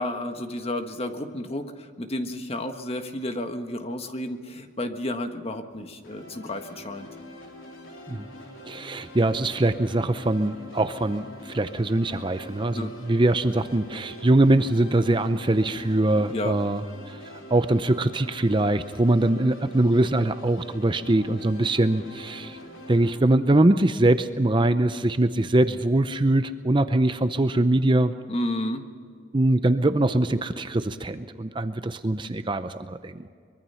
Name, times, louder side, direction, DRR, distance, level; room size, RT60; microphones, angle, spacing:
voice 1, 0.0-7.1 12.7-12.9 16.3-16.5 28.3-28.8, left 1 dB, 30° left, 6 dB, 1.5 m, -31 dB
sound 1, 6.0-23.2, left 1 dB, 85° left, 3.9 m, -44 dB
voice 2, 8.7-16.8 17.1-17.2 17.5-22.6 22.9-28.1 29.3-33.3, right 1 dB, 25° right, 10 dB, 0.6 m, -22 dB
24.0 x 22.5 x 5.7 m, 2.1 s
head